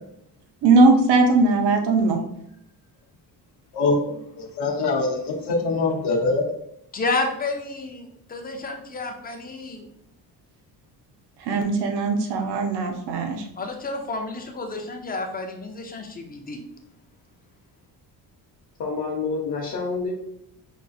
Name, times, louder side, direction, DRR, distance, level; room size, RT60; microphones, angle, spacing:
voice 1, 0.6-2.2 11.4-13.4, right 3 dB, 90° right, 3 dB, 0.8 m, -19 dB
voice 2, 3.7-6.5, left 3 dB, 80° left, -1 dB, 0.8 m, -24 dB
voice 3, 6.9-9.9 13.6-16.6, left 3 dB, 25° left, 4 dB, 0.4 m, -30 dB
voice 4, 18.8-20.1, left 4 dB, 50° left, -2 dB, 0.8 m, -28 dB
5.4 x 2.3 x 2.6 m, 0.75 s
cardioid pair, 160°, 40 cm